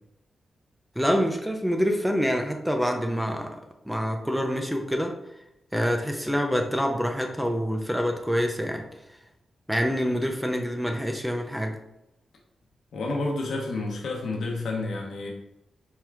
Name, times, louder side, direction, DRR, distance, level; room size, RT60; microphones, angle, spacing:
voice 1, 1.0-3.6 3.9-5.1 5.7-8.8 9.7-11.8, equal, 5° right, 3 dB, 0.4 m, -26 dB
voice 2, 12.9-15.3, left 2 dB, 85° left, -1 dB, 0.9 m, -30 dB
4.5 x 2.4 x 3.3 m, 0.86 s
wide cardioid pair, 115°, 0 cm